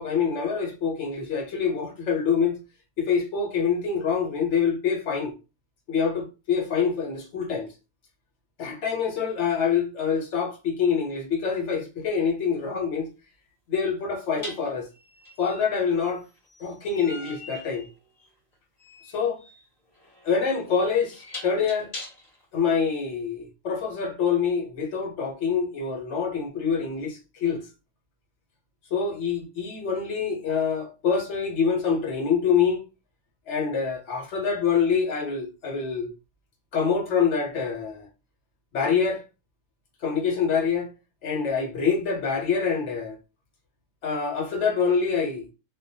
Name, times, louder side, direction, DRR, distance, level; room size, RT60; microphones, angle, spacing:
voice 1, 0.0-2.6 3.0-5.3 5.9-7.7 8.6-13.1 13.7-14.9 15.4-16.2 16.6-17.9 19.1-19.4 20.2-21.9 22.5-27.7 28.9-32.8 33.5-36.1 36.7-38.1 38.7-39.2 40.0-40.9 41.2-43.2 44.0-45.5, left 6 dB, 70° left, 0.9 m, -25 dB
sound 1, 12.0-12.1 14.4-22.5, left 1 dB, 40° left, 0.7 m, -43 dB
2.3 x 2.1 x 2.6 m
omnidirectional pair, 1.3 m